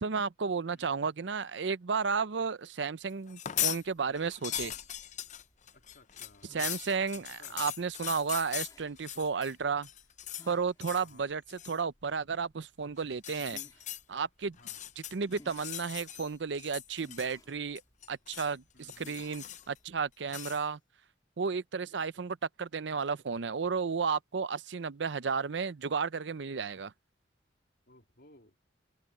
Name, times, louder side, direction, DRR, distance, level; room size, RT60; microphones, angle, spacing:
voice 1, 0.0-4.7 6.5-9.9 10.5-13.6 14.1-14.6 15.0-17.8 18.1-20.8 21.4-26.9, right 5 dB, 75° right, 0.6 m, -33 dB
sound 1, 3.3-3.8 4.2-9.5 9.8-10.5 10.8-11.1 11.5-11.8 13.1-14.0 14.5-16.3 16.6-17.5 17.8-18.5 18.9-19.8 20.3-20.6, left 11 dB, 40° left, 0.6 m, -39 dB
sound 2, 3.8-20.2, left 1 dB, 20° left, 3.5 m, -61 dB
voice 2, 5.7-6.8 7.1-7.6 10.9-11.3 14.5-14.8 18.7-19.2 27.9-28.5, left 2 dB, 60° left, 3.5 m, -59 dB
open air
head